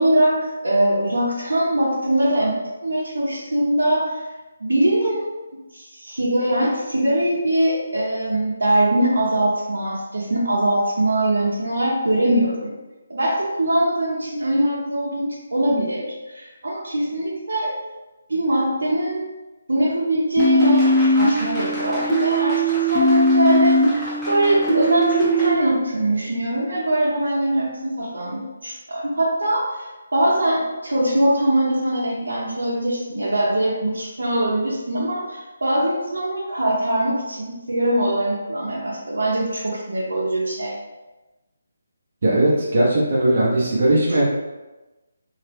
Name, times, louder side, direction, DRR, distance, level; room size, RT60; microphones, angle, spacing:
voice 1, 0.0-4.3 4.6-5.3 5.7-12.8 13.1-17.7 18.3-19.3 19.7-23.8 24.3-40.8, right 1 dB, 85° right, -6 dB, 0.7 m, -22 dB
sound 1, 20.4-25.5, equal, ahead, 0.5 m, -19 dB
voice 2, 42.2-44.3, right 1 dB, 50° right, -5 dB, 0.8 m, -18 dB
2.8 x 2.1 x 3.2 m, 1.1 s
hypercardioid pair, 165°, 0 cm